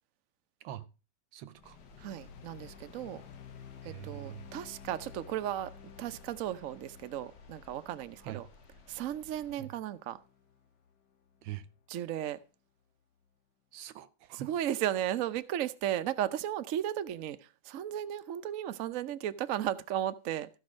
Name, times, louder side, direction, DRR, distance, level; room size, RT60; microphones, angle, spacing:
voice 1, 1.3-1.8 3.8-4.5 8.2-8.4 9.6-9.7 11.4-11.7 13.7-14.5, right 13 dB, 80° right, 1.5 m, -44 dB
sound 1, 1.5-12.0, left 7 dB, 65° left, 1.5 m, -53 dB
sound 2, 1.6-9.6, left 2 dB, 40° left, 1.2 m, -60 dB
voice 2, 2.0-3.2 3.8-5.7 6.0-8.5 8.9-10.2 11.9-12.4 14.3-20.5, right 11 dB, 60° right, 0.9 m, -35 dB
14.0 x 5.2 x 6.3 m
omnidirectional pair, 2.1 m